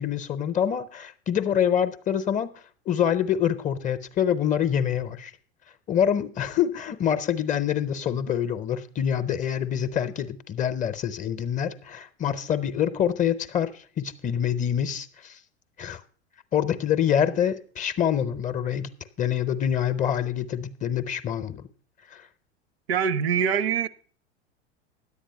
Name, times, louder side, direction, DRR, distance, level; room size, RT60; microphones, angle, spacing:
voice 1, 0.0-2.5 2.9-5.3 5.9-15.4 15.8-16.0 16.5-18.9 19.2-21.7 22.1-22.2, left 9 dB, 25° left, 0.6 m, -26 dB
voice 2, 22.9-23.9, right 7 dB, 65° right, 0.7 m, -24 dB
10.0 x 8.5 x 5.6 m
figure-of-eight pair, 85°, 34 cm